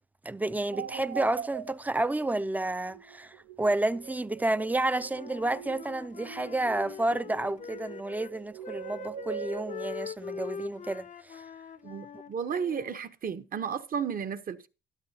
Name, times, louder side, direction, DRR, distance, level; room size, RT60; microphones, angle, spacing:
voice 1, 0.2-11.4, right 2 dB, 10° right, 0.5 m, -30 dB
sound 1, 0.7-9.9, right 8 dB, 85° right, 0.8 m, -43 dB
Wind instrument woodwind instrument, 4.6-8.3 8.6-13.0, left 7 dB, 40° left, 0.6 m, -43 dB
voice 2, 11.8-14.7, right 7 dB, 45° right, 1.0 m, -33 dB
12.5 x 12.0 x 2.9 m
cardioid pair, 90°, 20 cm